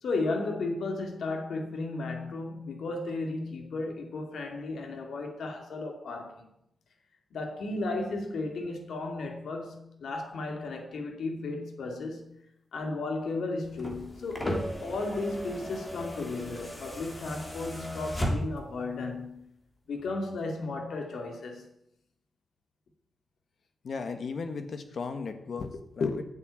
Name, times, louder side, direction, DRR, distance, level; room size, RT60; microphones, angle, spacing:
voice 1, 0.0-6.5 7.3-12.3 12.7-19.5 19.9-21.7, left 3 dB, 85° left, 2.6 m, -34 dB
sound 1, 13.6-18.8 20.0-20.1, equal, 20° left, 3.0 m, -36 dB
voice 2, 23.8-26.2, left 4 dB, 60° left, 1.7 m, -34 dB
11.0 x 8.3 x 8.8 m
wide cardioid pair, 145°, 0 cm